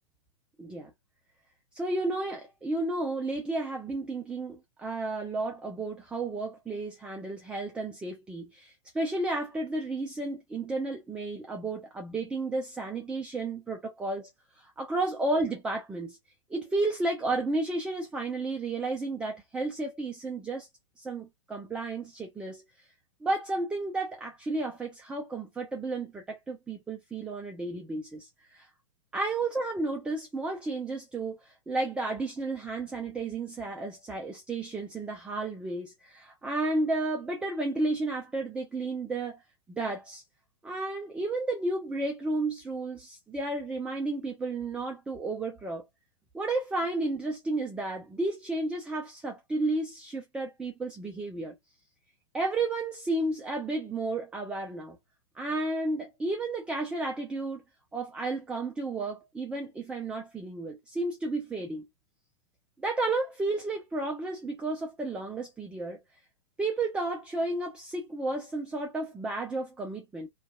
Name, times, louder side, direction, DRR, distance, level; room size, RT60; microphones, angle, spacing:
voice 1, 0.6-0.9 1.7-14.3 14.8-16.2 16.5-20.7 21.0-22.6 23.2-28.7 29.1-39.4 39.8-40.2 40.6-45.8 46.3-51.6 52.3-55.0 55.4-57.6 57.9-61.9 62.8-66.0 66.6-70.3, right 2 dB, 5° right, 0.4 m, -32 dB
2.5 x 2.3 x 2.3 m
figure-of-eight pair, 105°, 16 cm